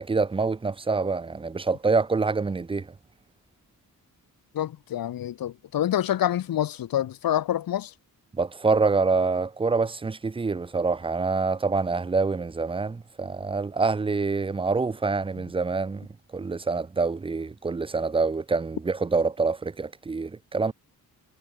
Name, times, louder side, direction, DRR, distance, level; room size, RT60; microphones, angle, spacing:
voice 1, 0.0-2.9 8.4-16.1 16.3-20.7, right 4 dB, 15° right, 0.4 m, -26 dB
voice 2, 4.5-7.9 15.4-15.5, left 11 dB, 70° left, 0.9 m, -27 dB
cardioid pair, 85°, 36 cm